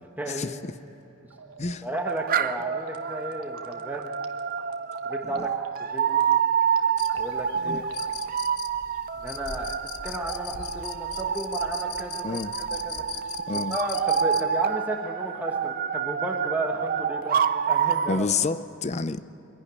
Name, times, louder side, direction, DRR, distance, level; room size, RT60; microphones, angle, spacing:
voice 1, 0.2-0.5 1.8-4.1 5.0-5.5 5.8-6.4 7.1-7.8 9.2-9.8 10.0-12.4 12.7-13.0 13.5-17.4 17.7-18.2, right 1 dB, 10° right, 1.3 m, -33 dB
sound 1, 1.3-8.3, right 5 dB, 75° right, 1.2 m, -47 dB
sound 2, 2.0-18.2, right 8 dB, 40° right, 0.5 m, -28 dB
sound 3, 7.0-14.4, left 8 dB, 85° left, 0.9 m, -39 dB
voice 2, 18.1-19.2, left 4 dB, 30° left, 0.5 m, -29 dB
24.0 x 11.0 x 9.7 m
head